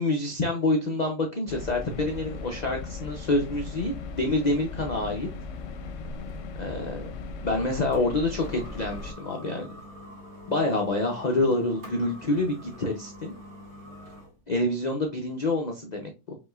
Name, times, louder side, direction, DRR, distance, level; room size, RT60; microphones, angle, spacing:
voice 1, 0.0-5.3 6.6-7.0 7.4-9.7 10.5-13.3 14.5-16.4, left 2 dB, 90° left, 2 dB, 0.3 m, -27 dB
sound 1, 1.5-9.1, left 4 dB, 65° left, 0.8 m, -38 dB
sound 2, 5.6-14.4, left 1 dB, 45° right, 1.9 m, -46 dB
5.1 x 3.0 x 2.3 m, 0.28 s
omnidirectional pair, 1.6 m